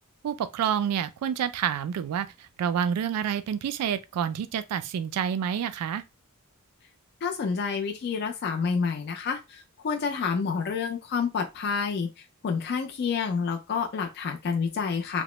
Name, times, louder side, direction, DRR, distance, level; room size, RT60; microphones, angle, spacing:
voice 1, 0.2-6.0, right 8 dB, 85° right, 0.3 m, -28 dB
voice 2, 7.2-15.2, left 5 dB, 50° left, 0.4 m, -29 dB
2.8 x 2.0 x 3.0 m
head